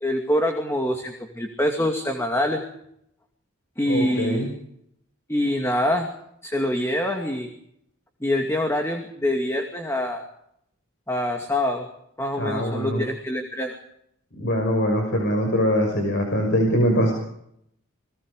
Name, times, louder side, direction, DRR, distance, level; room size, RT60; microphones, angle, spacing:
voice 1, 0.0-2.6 3.8-4.5 5.3-6.1 6.4-7.5 8.2-10.2 11.1-11.9 12.2-13.7, left 1 dB, 15° left, 3 dB, 2.5 m, -25 dB
voice 2, 3.9-4.5 12.4-13.0 14.4-17.1, equal, 60° left, 3 dB, 5.7 m, -22 dB
30.0 x 21.0 x 5.0 m, 0.75 s
head